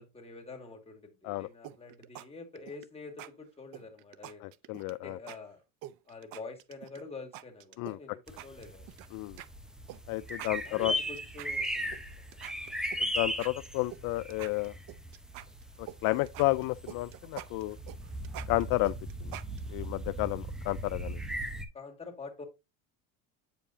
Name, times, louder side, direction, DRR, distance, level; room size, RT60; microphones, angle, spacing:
voice 1, 0.0-4.5 4.9-5.6 6.1-8.9 10.3-12.0 21.7-22.4, left 3 dB, 15° left, 2.1 m, -46 dB
sound 1, 1.6-2.3 2.6-2.9 3.2-3.3 3.7-4.9 5.3-5.4 5.8-7.0 7.3-8.0 8.3-9.1 9.4-9.5 9.9-10.0 10.3-12.0 12.3-14.0 14.3-16.0 16.3-19.9, right 14 dB, 55° right, 0.7 m, -45 dB
voice 2, 4.4-5.2 7.8-8.0 9.1-9.4 10.1-10.9 13.0-14.7 15.8-17.8 18.5-19.0 19.2-19.3 19.7-21.2, left 20 dB, 55° left, 0.4 m, -31 dB
sound 2, 8.3-21.7, equal, ahead, 0.8 m, -38 dB
8.4 x 5.2 x 2.7 m
supercardioid pair, 110°, 40 cm